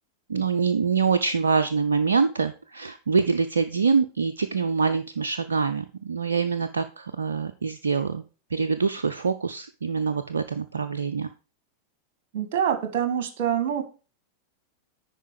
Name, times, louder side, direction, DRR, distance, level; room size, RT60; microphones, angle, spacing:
voice 1, 0.3-8.2 8.5-11.3, right 5 dB, 70° right, 10 dB, 0.4 m, -25 dB
voice 2, 12.3-13.8, right 9 dB, 50° right, 8 dB, 1.5 m, -25 dB
10.0 x 4.5 x 4.9 m, 0.35 s
figure-of-eight pair, 90°, 0 cm